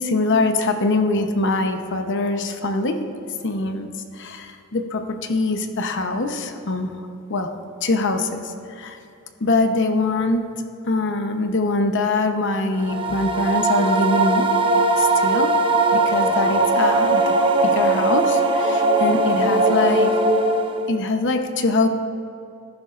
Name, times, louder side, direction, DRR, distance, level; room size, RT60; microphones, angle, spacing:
voice 1, 0.0-3.0 3.4-6.9 7.3-7.5 7.8-9.0 9.4-10.5 10.8-14.5 14.9-15.5 15.9-17.3 17.6-20.1 20.9-21.9, left 2 dB, 60° left, 6 dB, 0.9 m, -23 dB
sound 1, 12.8-21.0, right 2 dB, 25° right, 0.7 m, -19 dB
19.5 x 10.5 x 2.5 m, 2.7 s
head